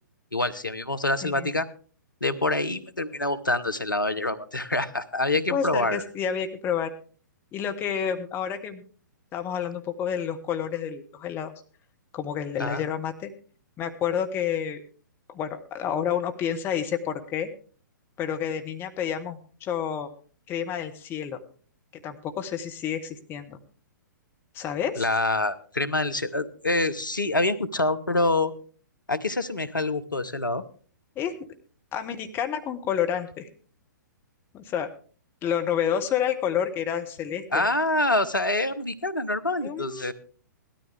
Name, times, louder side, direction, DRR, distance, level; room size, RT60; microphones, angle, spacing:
voice 1, 0.3-1.7 2.2-6.0 12.6-12.8 25.0-28.5 29.1-30.6 37.5-40.1, left 2 dB, 85° left, 12 dB, 1.1 m, -26 dB
voice 2, 5.5-6.9 7.5-8.8 9.3-11.5 12.1-13.3 13.8-14.8 15.3-17.5 18.2-20.1 20.5-21.4 21.9-23.6 24.5-25.1 31.2-31.5 31.9-33.5 34.5-34.9 35.4-37.6 39.6-40.1, left 8 dB, 20° left, 6 dB, 1.2 m, -29 dB
17.0 x 13.0 x 3.5 m, 0.41 s
figure-of-eight pair, 115°, 10 cm